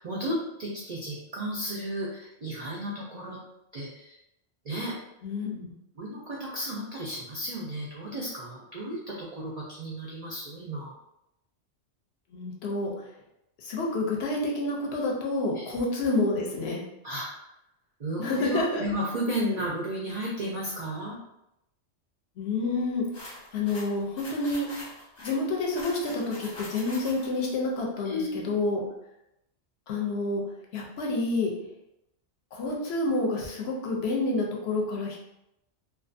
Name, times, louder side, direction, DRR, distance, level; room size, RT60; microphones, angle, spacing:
voice 1, 0.0-3.4 3.7-4.2 4.6-4.9 6.0-10.9 15.5-15.6 17.0-17.5 18.0-21.2 28.0-28.6, equal, 70° right, -4 dB, 0.3 m, -33 dB
voice 2, 5.2-5.7 12.3-12.9 13.6-16.8 18.2-18.8 22.4-23.0 23.5-24.7 25.2-28.8 29.9-30.4 30.7-31.5 32.5-35.2, left 2 dB, 65° left, -1 dB, 0.8 m, -28 dB
sound 1, 23.1-27.5, left 2 dB, 40° left, 0.8 m, -43 dB
2.4 x 2.4 x 2.5 m, 0.85 s
omnidirectional pair, 1.3 m